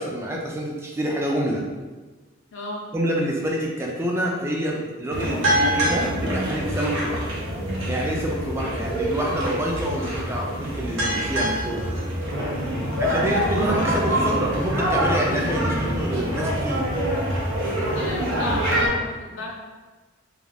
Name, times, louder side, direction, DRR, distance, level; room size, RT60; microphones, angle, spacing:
voice 1, 0.0-1.6 2.9-7.3 7.9-11.9 13.0-16.9, right 1 dB, 15° right, -2 dB, 0.4 m, -27 dB
voice 2, 2.5-2.8 12.7-13.2 17.6-19.5, left 2 dB, 75° left, -1 dB, 0.6 m, -34 dB
sound 1, 5.1-18.9, equal, 85° right, 0.7 m, -25 dB
2.3 x 2.3 x 3.3 m, 1.3 s
head